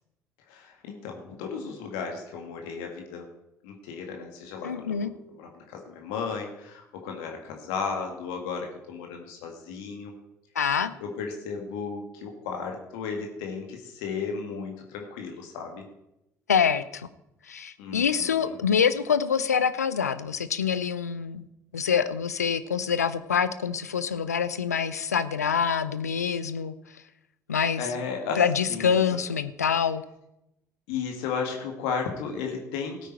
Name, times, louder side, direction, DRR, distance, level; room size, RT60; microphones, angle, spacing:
voice 1, 0.5-3.3 3.6-5.1 5.4-10.1 11.0-15.8 17.8-18.6 27.8-28.4 28.7-29.0 30.9-33.1, left 5 dB, 70° left, 2 dB, 1.9 m, -34 dB
voice 2, 4.6-5.1 10.6-10.9 16.5-17.1 17.5-21.4 21.7-26.7 27.5-27.9 28.4-30.0, left 7 dB, 85° left, 14 dB, 0.5 m, -25 dB
16.5 x 9.1 x 4.5 m, 0.85 s
figure-of-eight pair, 50°, 8 cm